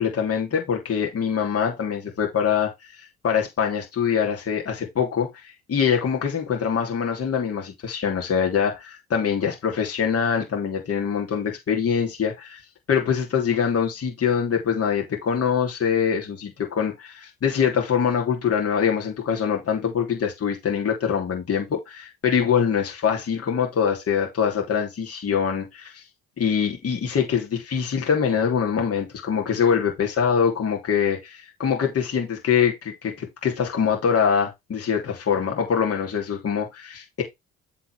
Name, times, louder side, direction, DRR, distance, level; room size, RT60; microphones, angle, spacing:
voice 1, 0.0-12.6 12.9-26.0 26.4-37.2, left 7 dB, 50° left, 3.1 m, -24 dB
7.7 x 4.3 x 4.7 m
hypercardioid pair, 60°, 31 cm